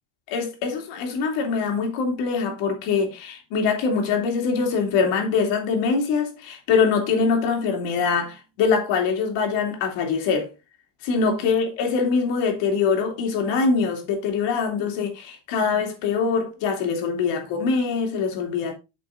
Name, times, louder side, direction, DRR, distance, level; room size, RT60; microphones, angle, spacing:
voice 1, 0.3-10.5 11.0-18.7, left 5 dB, 90° left, 3.3 m, -23 dB
8.5 x 6.1 x 3.8 m
cardioid pair, 165°, 43 cm